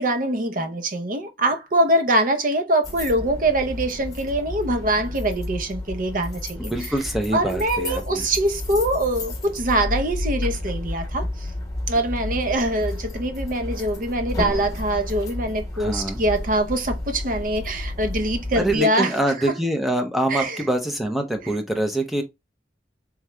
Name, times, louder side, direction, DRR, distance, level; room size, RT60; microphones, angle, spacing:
voice 1, 0.0-6.7 7.3-11.5 11.9-19.1 19.4-19.5 20.3-20.6, right 1 dB, 50° right, 0.7 m, -23 dB
sound 1, 2.8-18.8, left 1 dB, 20° left, 1.2 m, -31 dB
voice 2, 6.6-8.2 15.7-16.2 18.6-22.2, right 1 dB, ahead, 0.6 m, -25 dB
3.6 x 3.1 x 3.3 m
head